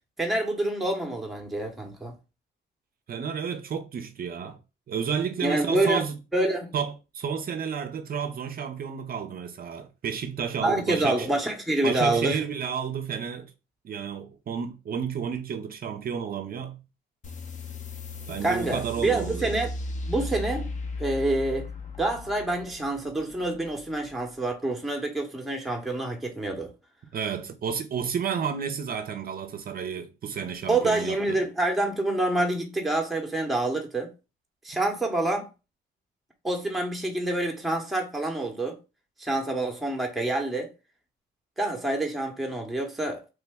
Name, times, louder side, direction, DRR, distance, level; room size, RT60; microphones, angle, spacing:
voice 1, 0.2-2.1 5.4-6.0 6.3-6.7 10.6-12.4 18.4-19.7 20.1-20.7 21.0-21.7 22.0-26.7 30.7-34.1 34.6-35.5 36.4-38.8 39.2-40.7 41.6-43.3, right 2 dB, ahead, 0.7 m, -27 dB
voice 2, 3.1-4.6 4.9-6.2 6.7-11.3 11.8-13.5 13.8-16.8 18.3-19.5 27.1-31.4, right 7 dB, 50° right, 0.5 m, -31 dB
sound 1, 17.2-24.4, left 2 dB, 40° left, 0.7 m, -37 dB
3.1 x 2.1 x 3.4 m
cardioid pair, 90°, 20 cm